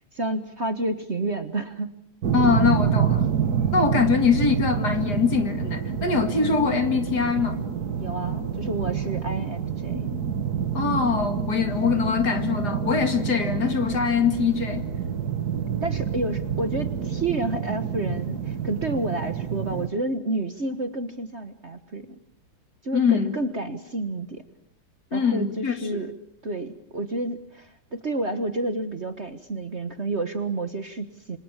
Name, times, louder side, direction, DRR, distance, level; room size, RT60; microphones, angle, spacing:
voice 1, 0.1-1.9 8.0-10.1 15.8-22.1 22.8-24.5 25.1-26.1 26.4-31.4, right 2 dB, 35° right, 9 dB, 1.5 m, -30 dB
sound 1, 2.2-19.9, right 7 dB, 55° right, 1.8 m, -27 dB
voice 2, 2.3-3.3 3.7-7.6 10.7-14.8 22.9-23.3 25.1-26.0, left 6 dB, 50° left, 8 dB, 2.6 m, -23 dB
27.5 x 26.0 x 7.4 m, 0.71 s
omnidirectional pair, 2.2 m